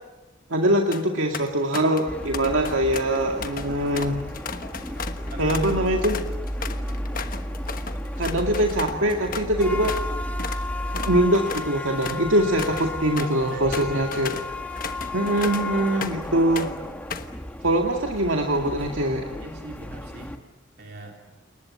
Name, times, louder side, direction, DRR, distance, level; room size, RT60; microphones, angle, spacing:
voice 1, 0.5-4.2 5.4-6.2 8.2-10.0 10.9-14.3 15.1-16.7 17.6-19.3, right 1 dB, 85° right, 2 dB, 2.2 m, -23 dB
sound 1, 0.9-1.0 1.3-2.1 2.3-10.1 10.4-10.6 10.9-16.3 16.6-17.4, left 5 dB, 45° left, 1.2 m, -35 dB
sound 2, 2.1-20.4, left 2 dB, 5° left, 1.5 m, -35 dB
sound 3, 2.8-11.3, equal, 35° right, 2.1 m, -33 dB
voice 2, 5.2-5.9 12.4-12.8 13.1-14.1 19.4-20.4 20.8-21.2, right 2 dB, 55° right, 1 dB, 3.4 m, -42 dB
29.5 x 19.5 x 8.6 m, 1.0 s
head